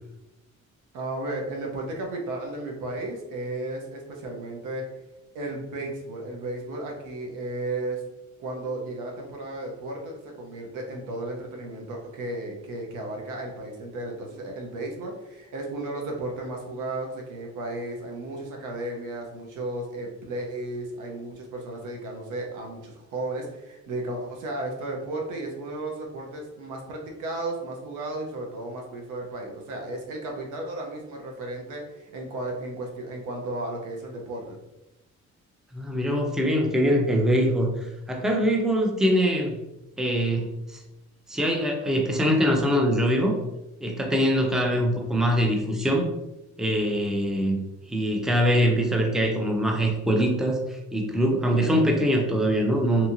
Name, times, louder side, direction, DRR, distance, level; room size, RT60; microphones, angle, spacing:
voice 1, 0.9-4.8 5.3-8.0 8.4-34.6 44.3-44.8, right 2 dB, 90° right, 1 dB, 0.7 m, -34 dB
voice 2, 35.7-39.5 40.0-40.8 41.3-43.4 43.8-46.1 46.6-47.6 47.9-53.1, equal, ahead, 1 dB, 0.5 m, -23 dB
2.8 x 2.6 x 2.5 m, 0.96 s
cardioid pair, 90°, 30 cm